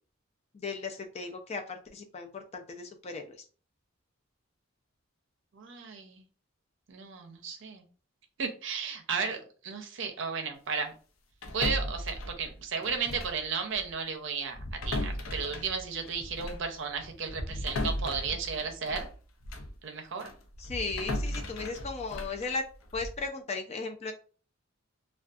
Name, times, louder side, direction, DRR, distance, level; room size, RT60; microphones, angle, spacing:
voice 1, 0.5-3.2 20.6-22.6 22.9-24.1, left 4 dB, 30° left, 5 dB, 0.3 m, -36 dB
voice 2, 5.5-6.2 6.9-7.8 8.4-10.9 11.5-19.1 19.8-20.3, right 5 dB, 65° right, 5 dB, 0.5 m, -34 dB
sound 1, 11.4-13.5 13.7-13.9 14.5-19.8 20.2-23.3, left 1 dB, 85° left, 0.5 m, -36 dB
2.5 x 2.3 x 2.3 m, 0.38 s
head